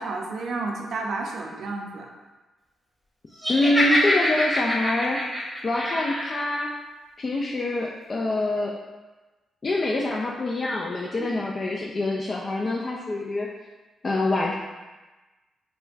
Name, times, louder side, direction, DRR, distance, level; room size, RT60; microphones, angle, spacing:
voice 1, 0.0-2.1 11.2-11.4, right 3 dB, 65° right, 1 dB, 0.5 m, -31 dB
Laughter, 3.4-6.4, left 1 dB, 5° left, 1.1 m, -25 dB
voice 2, 3.5-5.2 5.6-6.7 7.2-8.7 9.6-13.5 14.0-14.5, left 2 dB, 45° left, -2 dB, 0.3 m, -25 dB
4.3 x 2.2 x 2.6 m, 1.2 s
hypercardioid pair, 45°, 0 cm